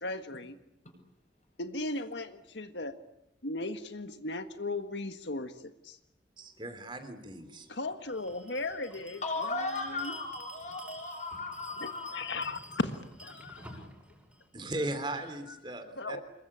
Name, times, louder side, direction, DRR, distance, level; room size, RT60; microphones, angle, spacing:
voice 1, 0.0-0.6 1.6-2.9 3.4-6.0 7.7-9.2 9.5-10.2 11.8-13.9 15.5-15.6 16.0-16.2, left 2 dB, 85° left, 9 dB, 1.6 m, -37 dB
voice 2, 6.4-7.7 14.5-16.2, right 1 dB, 25° right, 9 dB, 3.2 m, -37 dB
Bell, 8.0-15.3, equal, 5° right, 6.7 m, -50 dB
voice 3, 9.2-12.2, left 3 dB, 40° left, 5 dB, 8.0 m, -36 dB
27.0 x 22.5 x 8.8 m, 0.85 s
head